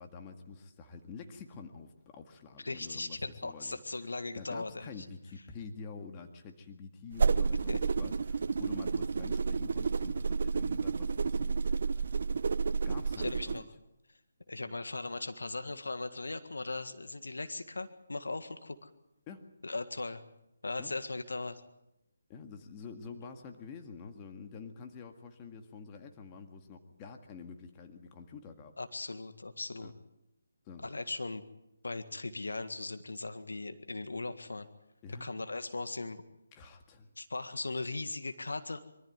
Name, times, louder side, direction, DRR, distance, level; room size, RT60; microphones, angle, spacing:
voice 1, 0.0-3.8 4.4-12.1 12.8-13.7 19.3-19.5 20.8-20.9 22.3-28.7 29.8-29.9 30.7-30.9 35.0-35.3 36.5-37.1, left 5 dB, 20° left, 5 dB, 1.9 m, -48 dB
voice 2, 2.6-5.1 7.7-7.8 13.2-13.6 14.5-18.9 19.6-20.2 20.6-21.6 28.8-29.9 30.8-31.4 31.8-34.7 35.1-36.2 37.2-38.8, left 3 dB, 90° left, 10 dB, 1.7 m, -38 dB
sound 1, 7.1-13.6, right 5 dB, 60° right, 0.8 m, -30 dB
23.5 x 14.0 x 9.3 m, 0.88 s
figure-of-eight pair, 160°, 0 cm